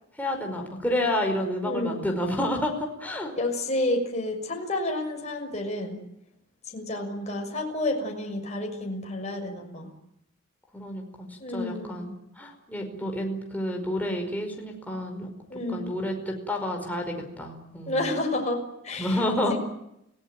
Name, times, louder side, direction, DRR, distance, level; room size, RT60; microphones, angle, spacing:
voice 1, 0.2-3.3 10.7-15.3 15.7-18.0 19.0-19.6, left 1 dB, 10° left, 2 dB, 5.1 m, -30 dB
voice 2, 1.6-2.1 3.4-6.0 6.7-9.9 11.4-12.1 15.5-15.9 17.9-19.2 19.5-19.6, left 1 dB, 30° left, 2 dB, 6.2 m, -30 dB
29.5 x 18.0 x 9.2 m, 0.80 s
head